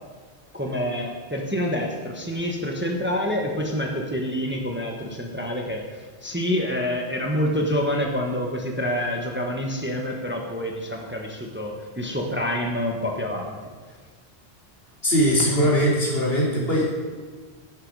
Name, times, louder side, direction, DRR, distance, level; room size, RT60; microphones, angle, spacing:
voice 1, 0.5-5.8 6.2-13.6, equal, 10° right, 1 dB, 1.3 m, -27 dB
voice 2, 15.0-16.9, equal, 65° left, -5 dB, 3.5 m, -20 dB
11.5 x 10.5 x 4.8 m, 1.5 s
omnidirectional pair, 1.1 m